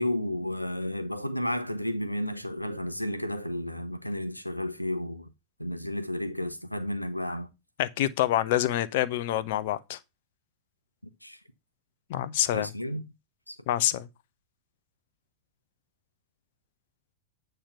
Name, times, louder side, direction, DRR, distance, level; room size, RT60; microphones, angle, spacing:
voice 1, 0.0-5.3 5.6-7.5 11.2-11.4 12.5-13.0 13.5-13.6, left 1 dB, 90° left, 0.9 m, -32 dB
voice 2, 7.8-10.0 12.1-12.7 13.7-14.1, left 13 dB, 50° left, 0.7 m, -26 dB
8.7 x 3.4 x 5.7 m
figure-of-eight pair, 90°, 0 cm